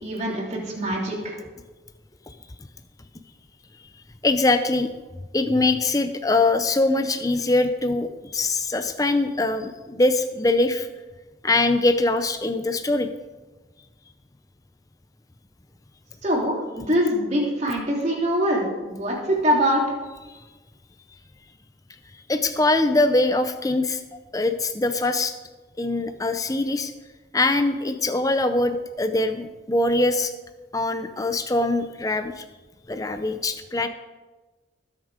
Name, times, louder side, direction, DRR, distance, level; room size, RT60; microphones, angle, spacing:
voice 1, 0.0-1.4 16.2-19.8, equal, 35° right, -3 dB, 3.4 m, -24 dB
voice 2, 4.2-4.9 5.3-10.9 11.4-13.1 22.3-24.0 24.3-25.3 25.8-26.9 27.3-30.3 30.7-32.4 32.9-33.9, left 2 dB, 20° left, 8 dB, 0.6 m, -22 dB
20.0 x 7.3 x 5.1 m, 1.2 s
head